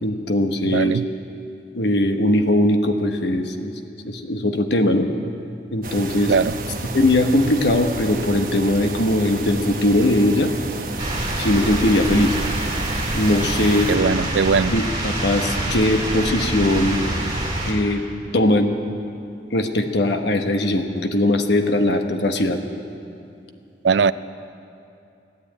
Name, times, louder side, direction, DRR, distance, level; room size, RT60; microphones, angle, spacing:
voice 1, 0.0-1.0 1.7-3.7 4.0-5.1 5.7-6.3 6.9-10.5 11.4-12.3 13.1-13.9 14.7-17.0 17.7-18.0 18.3-18.7 19.5-22.6, left 1 dB, 80° left, 6 dB, 1.1 m, -20 dB
voice 2, 0.7-1.0 6.3-6.5 13.9-14.7 23.8-24.1, right 5 dB, 85° right, 16 dB, 0.4 m, -19 dB
sound 1, 5.8-14.0, right 2 dB, 50° right, 1.1 m, -31 dB
sound 2, 11.0-17.7, right 1 dB, 25° right, 2.4 m, -26 dB
16.0 x 9.7 x 8.8 m, 2.6 s
head